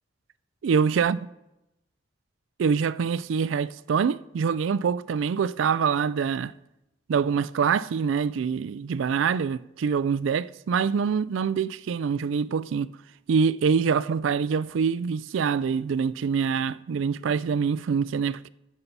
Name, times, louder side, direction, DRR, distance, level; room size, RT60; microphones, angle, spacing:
voice 1, 0.6-1.2 2.6-6.5 7.1-12.9 13.3-18.5, right 6 dB, 85° right, 0.4 m, -25 dB
14.0 x 5.5 x 6.8 m
head